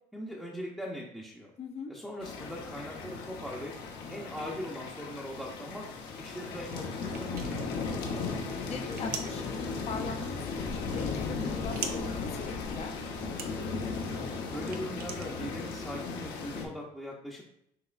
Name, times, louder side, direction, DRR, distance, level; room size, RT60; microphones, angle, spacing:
voice 1, 0.1-1.5 1.9-3.7 4.1-5.9 6.2-7.8 14.5-17.4, equal, ahead, -5 dB, 0.7 m, -40 dB
voice 2, 1.6-1.9 8.6-13.0, left 4 dB, 40° left, 4 dB, 0.5 m, -40 dB
sound 1, 2.2-16.7, left 4 dB, 75° left, 0.9 m, -36 dB
sound 2, 7.0-15.9, right 6 dB, 65° right, 0.6 m, -44 dB
5.7 x 3.0 x 2.4 m, 0.77 s
cardioid pair, 110°, 17 cm